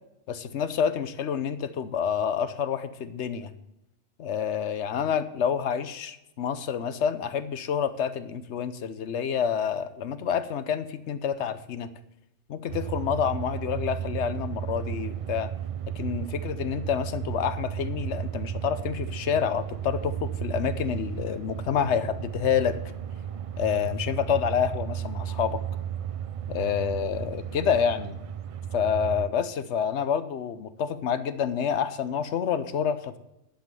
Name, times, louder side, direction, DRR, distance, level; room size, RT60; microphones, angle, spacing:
voice 1, 0.3-3.5 4.2-11.9 12.5-15.5 16.0-22.8 23.6-25.6 26.5-28.2 28.7-33.2, left 7 dB, 75° left, 12 dB, 1.0 m, -28 dB
sound 1, 12.7-29.3, right 9 dB, 60° right, 0.3 m, -34 dB
10.5 x 5.8 x 6.8 m, 0.90 s
omnidirectional pair, 1.2 m